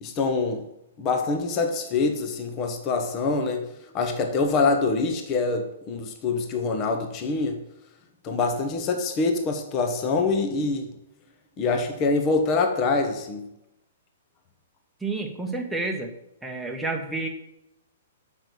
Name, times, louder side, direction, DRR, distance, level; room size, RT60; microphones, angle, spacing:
voice 1, 0.0-0.6 1.0-3.7 3.9-7.6 8.2-10.9 11.6-13.5, left 3 dB, 25° left, 5 dB, 1.0 m, -25 dB
voice 2, 15.0-16.1 16.4-17.3, right 3 dB, 5° right, 0 dB, 1.0 m, -29 dB
6.2 x 5.3 x 6.3 m, 0.85 s
hypercardioid pair, 155°, 0 cm